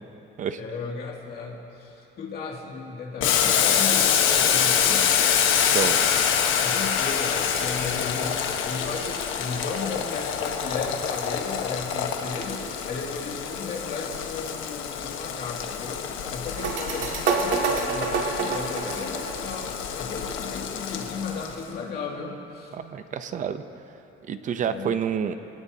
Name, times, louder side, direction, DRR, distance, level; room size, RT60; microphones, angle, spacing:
voice 1, 0.6-5.1 6.6-22.7 24.7-24.9, left 4 dB, 50° left, -2 dB, 2.4 m, -35 dB
Boiling, 3.2-21.6, left 8 dB, 80° left, 1.2 m, -26 dB
sound 1, 16.6-20.0, right 5 dB, 70° right, 2.0 m, -27 dB
voice 2, 22.7-23.6 24.3-25.4, right 7 dB, 40° right, 10 dB, 0.7 m, -28 dB
23.5 x 18.0 x 2.8 m, 3.0 s
cardioid pair, 160°, 20 cm